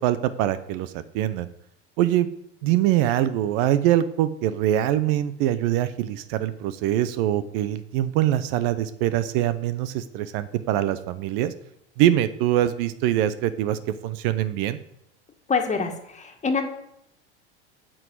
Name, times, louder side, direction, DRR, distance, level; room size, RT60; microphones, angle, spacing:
voice 1, 0.0-1.5 2.0-2.3 2.6-11.5 12.0-14.8, right 12 dB, 60° right, 13 dB, 0.8 m, -23 dB
voice 2, 15.5-16.6, left 4 dB, 20° left, 4 dB, 1.9 m, -25 dB
8.8 x 6.4 x 8.4 m, 0.79 s
hypercardioid pair, 90°, 33 cm